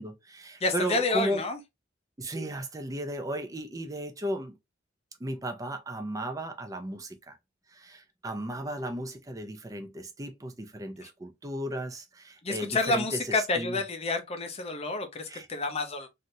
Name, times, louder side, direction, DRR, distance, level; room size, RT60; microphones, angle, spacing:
voice 1, 0.0-1.4 2.2-4.5 5.2-7.4 7.7-13.8 15.3-15.5, right 1 dB, 20° right, 0.5 m, -35 dB
voice 2, 0.6-1.6 11.0-11.1 12.4-16.1, left 3 dB, 35° left, 0.6 m, -29 dB
3.2 x 2.6 x 2.7 m
head